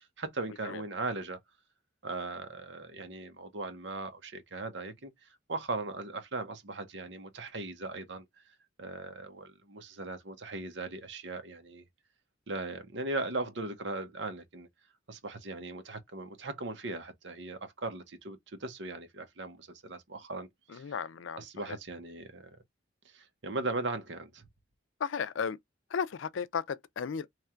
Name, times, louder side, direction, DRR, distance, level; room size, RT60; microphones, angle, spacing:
voice 1, 0.0-1.4 2.0-8.3 8.8-11.8 12.5-14.7 15.1-20.9 21.4-22.6 23.1-24.4, right 2 dB, 70° right, 1.0 m, -38 dB
voice 2, 20.7-21.8 25.0-25.6 25.9-27.3, left 6 dB, 90° left, 0.4 m, -35 dB
3.2 x 2.4 x 4.3 m
head